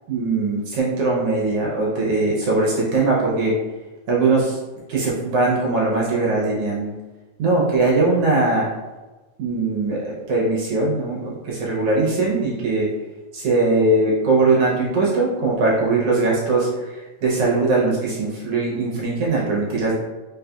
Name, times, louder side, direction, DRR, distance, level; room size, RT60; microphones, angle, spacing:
voice 1, 0.1-3.5 4.1-4.6 4.9-6.9 7.4-8.7 9.4-12.9 13.3-19.9, right 3 dB, 70° right, -4 dB, 1.5 m, -20 dB
4.0 x 3.9 x 2.3 m, 1.2 s
omnidirectional pair, 3.3 m